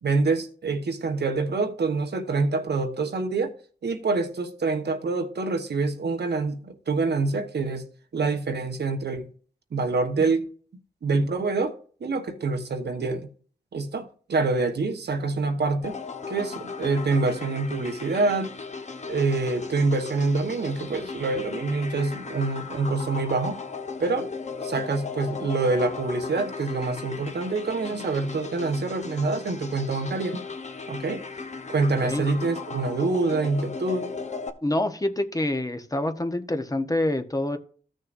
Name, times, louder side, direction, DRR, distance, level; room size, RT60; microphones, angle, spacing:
voice 1, 0.0-3.5 3.8-7.8 8.1-9.3 9.7-10.5 11.0-11.7 12.0-13.3 13.7-16.0 16.3-18.5 19.1-23.5 24.0-24.3 24.6-30.4 30.9-31.2 31.7-34.1, right 3 dB, 80° right, 1.2 m, -26 dB
sound 1, 15.8-34.5, left 4 dB, 45° left, 1.1 m, -37 dB
voice 2, 34.6-37.6, left 1 dB, 20° left, 1.0 m, -26 dB
15.0 x 6.5 x 2.6 m
wide cardioid pair, 90°, 17 cm